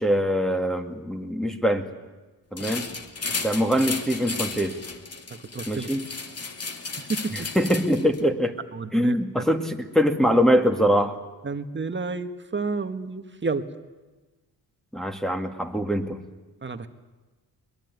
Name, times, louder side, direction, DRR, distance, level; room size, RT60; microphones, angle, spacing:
voice 1, 0.0-1.9 2.5-2.9 3.4-4.7 5.7-6.1 7.3-8.5 8.9-11.2 14.9-16.2, equal, ahead, 3 dB, 2.3 m, -23 dB
sound 1, 2.6-8.2, left 4 dB, 40° left, 3.0 m, -34 dB
voice 2, 5.5-5.9 7.0-7.5 8.7-9.5 11.4-13.6 16.6-16.9, right 4 dB, 30° right, 8 dB, 1.9 m, -30 dB
22.5 x 21.0 x 9.6 m, 1.2 s
cardioid pair, 75°, 39 cm